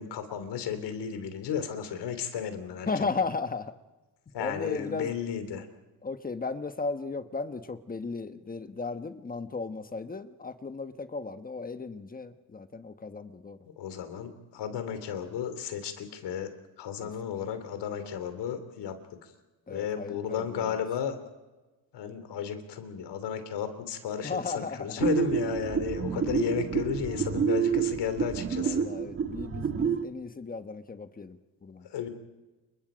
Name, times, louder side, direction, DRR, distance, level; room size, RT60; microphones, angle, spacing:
voice 1, 0.0-3.1 4.3-5.7 13.8-16.5 16.8-18.9 19.7-21.1 21.9-28.9 31.9-32.1, left 8 dB, 85° left, 10 dB, 3.2 m, -33 dB
voice 2, 2.9-3.8 4.4-5.1 6.0-13.6 17.0-17.1 19.7-20.8 24.2-25.0 28.5-31.9, left 4 dB, 20° left, 10 dB, 1.1 m, -35 dB
sound 1, 25.0-30.0, right 7 dB, 35° right, 1.5 m, -28 dB
29.0 x 24.5 x 5.1 m, 1.1 s
cardioid pair, 145°, 40 cm